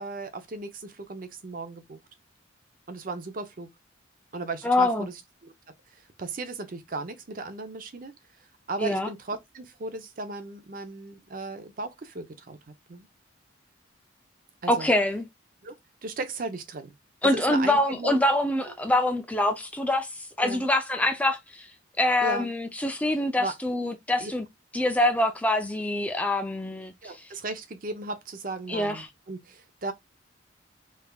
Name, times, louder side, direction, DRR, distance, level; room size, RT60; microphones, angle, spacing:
voice 1, 0.0-2.0 2.9-3.7 4.3-5.5 5.9-8.1 8.7-12.6 12.9-13.1 14.6-14.9 15.6-16.9 17.3-18.2 20.4-20.6 22.2-22.5 23.4-23.5 24.2-24.3 27.0-29.9, right 3 dB, 45° right, 0.6 m, -36 dB
voice 2, 4.6-5.1 8.8-9.1 14.7-15.2 17.2-21.7 22.0-24.5 24.7-27.3 28.7-29.1, left 1 dB, 5° left, 0.4 m, -25 dB
3.3 x 3.3 x 2.2 m
head